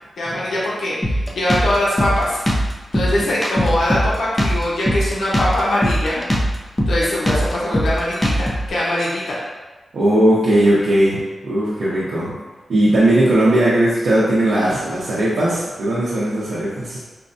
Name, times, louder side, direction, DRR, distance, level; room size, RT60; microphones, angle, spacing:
voice 1, 0.2-2.4 2.9-6.2 6.9-9.4, left 1 dB, 90° left, -7 dB, 0.9 m, -22 dB
Drum kit, 1.0-8.7, equal, 10° left, 0.4 m, -20 dB
voice 2, 9.9-12.3 12.7-17.0, right 1 dB, 80° right, -9 dB, 0.7 m, -18 dB
4.4 x 2.1 x 2.6 m, 1.2 s
wide cardioid pair, 155°, 0 cm